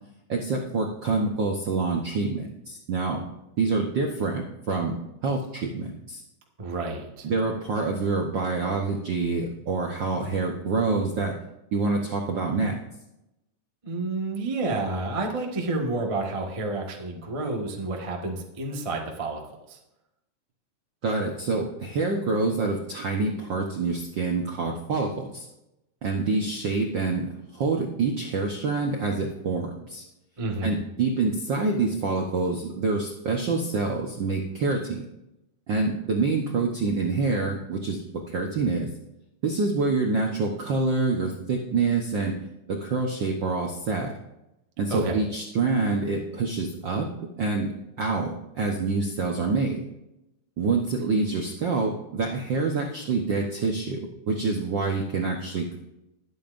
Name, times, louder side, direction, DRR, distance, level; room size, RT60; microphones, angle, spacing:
voice 1, 0.3-3.2 3.6-5.0 5.2-6.2 7.2-11.3 11.7-12.8 21.0-25.5 26.0-30.0 30.6-35.0 35.7-38.0 38.3-38.9 39.4-42.4 42.7-44.1 44.8-47.1 47.4-47.7 48.0-49.8 50.6-55.8, right 3 dB, 75° right, 1 dB, 1.0 m, -26 dB
voice 2, 6.6-7.3 13.8-19.8 30.4-30.8 44.9-45.2, right 2 dB, 55° right, 1 dB, 0.3 m, -30 dB
21.0 x 9.1 x 2.6 m, 0.89 s
omnidirectional pair, 3.6 m